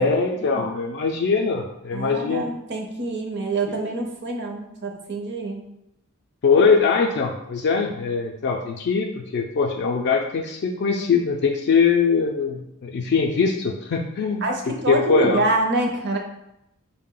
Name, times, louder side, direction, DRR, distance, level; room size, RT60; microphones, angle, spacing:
voice 1, 0.0-2.5 6.4-14.4 14.9-15.5, left 5 dB, 50° left, 1 dB, 0.3 m, -22 dB
voice 2, 1.9-5.6 14.4-16.2, right 2 dB, 55° right, 3 dB, 0.6 m, -26 dB
4.7 x 2.1 x 3.7 m, 0.83 s
head